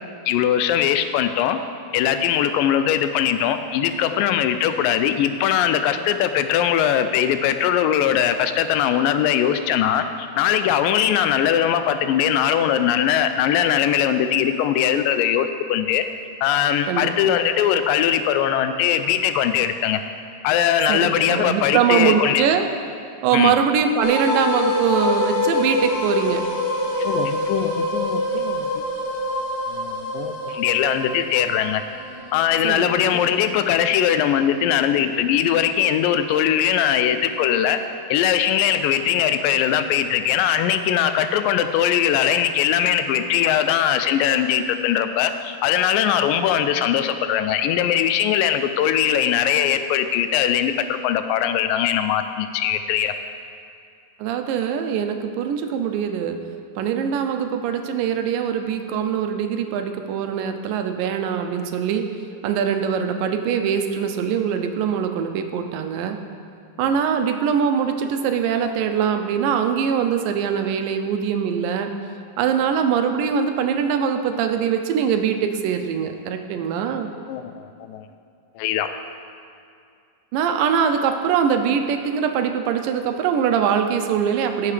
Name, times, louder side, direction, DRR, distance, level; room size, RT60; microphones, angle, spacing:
voice 1, 0.3-1.6 1.9-16.0 16.4-20.0 20.4-22.5 23.3-23.5 27.0-28.7 29.7-31.8 32.3-37.8 38.1-53.1 77.3-78.0 78.6-78.9, left 10 dB, 90° left, 9 dB, 2.2 m, -20 dB
voice 2, 16.9-17.3 20.9-22.7 23.2-26.4 32.6-33.2 54.2-56.4 56.8-62.1 62.4-66.2 66.8-71.9 72.4-77.1 80.3-84.7, right 7 dB, 85° right, 6 dB, 2.3 m, -22 dB
sound 1, 24.0-35.2, left 1 dB, 60° left, 1.6 m, -26 dB
16.0 x 6.8 x 3.3 m, 2.3 s
omnidirectional pair, 3.8 m